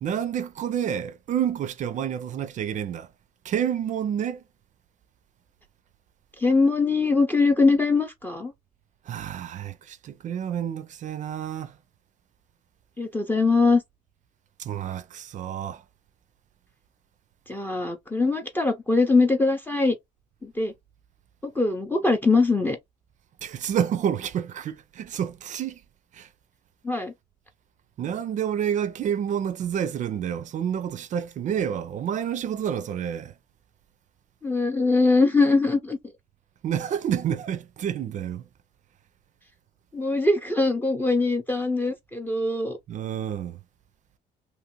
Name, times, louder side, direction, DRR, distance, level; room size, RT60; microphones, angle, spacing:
voice 1, 0.0-3.1 3.4-4.4 9.1-11.7 14.6-15.8 23.4-25.8 26.1-26.3 28.0-33.3 36.6-38.4 42.9-43.6, right 9 dB, 45° right, 0.4 m, -29 dB
voice 2, 6.4-8.5 13.0-13.8 17.5-20.0 20.4-20.7 21.4-22.8 26.8-27.1 34.4-36.0 39.9-42.8, left 3 dB, 10° left, 0.5 m, -22 dB
2.8 x 2.5 x 2.9 m
cardioid pair, 110°, 17 cm